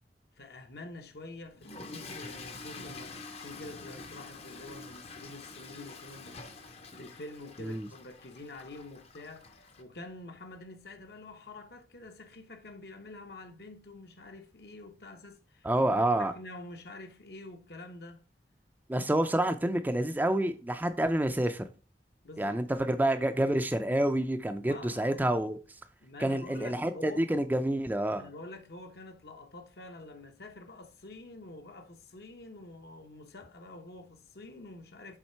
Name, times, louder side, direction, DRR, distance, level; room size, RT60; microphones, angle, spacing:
voice 1, 0.3-18.2 22.2-22.6 24.6-25.2 26.0-27.4 28.1-35.2, left 2 dB, 60° left, 1.0 m, -47 dB
Toilet flush / Fill (with liquid), 1.5-9.8, left 3 dB, 35° left, 0.7 m, -47 dB
voice 2, 15.6-16.3 18.9-21.7 22.4-25.6 26.2-28.3, right 1 dB, 10° right, 0.4 m, -28 dB
7.2 x 3.7 x 4.4 m
head